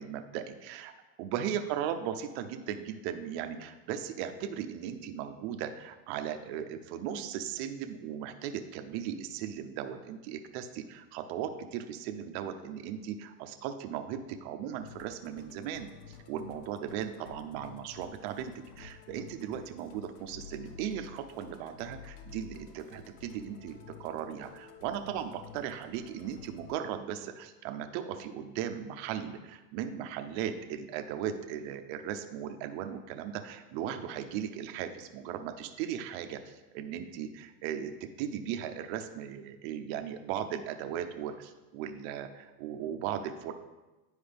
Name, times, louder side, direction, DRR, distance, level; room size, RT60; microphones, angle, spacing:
voice 1, 0.0-0.9 1.2-43.5, right 9 dB, 45° right, 7 dB, 0.6 m, -37 dB
Musical instrument, 14.8-26.7, left 6 dB, 85° left, 1.0 m, -51 dB
9.9 x 4.8 x 3.4 m, 1.1 s
supercardioid pair, 145°, 46 cm